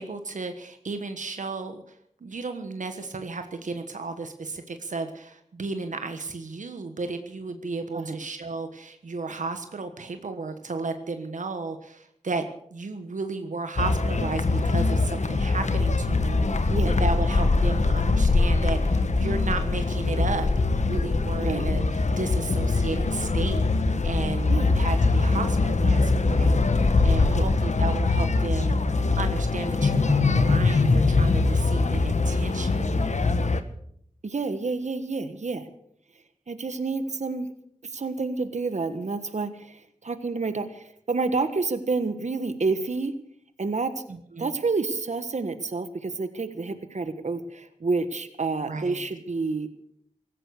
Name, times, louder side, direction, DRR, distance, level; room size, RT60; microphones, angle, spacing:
voice 1, 0.0-1.8 2.2-28.8 29.2-33.2 44.1-44.5 48.7-49.0, right 3 dB, 85° right, 7 dB, 1.3 m, -34 dB
sound 1, 13.8-33.6, left 3 dB, 70° left, 1.3 m, -22 dB
voice 2, 21.4-21.7 24.5-24.7 27.3-27.5 34.2-35.7 36.5-37.5 37.8-43.1 43.6-44.0 44.4-49.7, right 3 dB, 65° right, 10 dB, 1.4 m, -29 dB
16.5 x 13.5 x 6.5 m, 0.67 s
cardioid pair, 40°, 13 cm